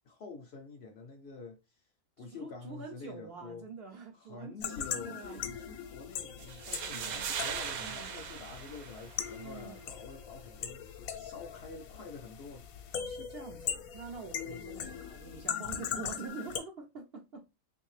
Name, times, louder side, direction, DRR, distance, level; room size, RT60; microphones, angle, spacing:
voice 1, 0.0-1.9 2.2-3.7 4.1-12.7 14.4-14.7, left 4 dB, 65° left, 0.7 m, -48 dB
voice 2, 2.2-5.4 6.9-7.3 7.8-8.3 9.3-9.9 12.9-17.5, right 4 dB, 55° right, 0.7 m, -46 dB
sound 1, 4.6-16.6, left 8 dB, 80° left, 1.0 m, -40 dB
sound 2, 6.4-9.4, right 7 dB, 85° right, 1.1 m, -39 dB
3.3 x 2.6 x 3.1 m
omnidirectional pair, 1.5 m